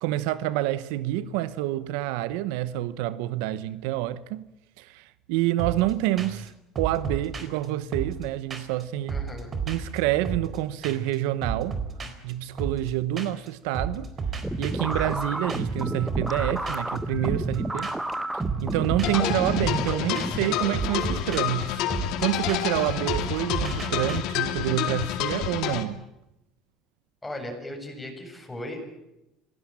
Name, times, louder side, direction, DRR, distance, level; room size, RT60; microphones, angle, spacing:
voice 1, 0.0-4.5 4.8-6.5 6.8-9.2 9.7-11.8 12.2-14.1 14.6-17.9 18.6-21.8 22.2-26.0, right 14 dB, 85° right, 0.9 m, -28 dB
sound 1, 5.6-5.9 6.2-6.5 6.7-8.8 9.1-10.6 10.8-11.1 11.4-13.5 13.7-24.2, right 5 dB, 35° right, 4.1 m, -34 dB
voice 2, 9.1-9.5 27.2-28.8, left 1 dB, 10° left, 7.5 m, -37 dB
sound 2, 14.4-21.2, right 1 dB, 5° right, 1.3 m, -31 dB
sound 3, 19.0-25.8, left 12 dB, 70° left, 2.2 m, -29 dB
25.5 x 17.5 x 8.8 m
supercardioid pair, 110°, 0 cm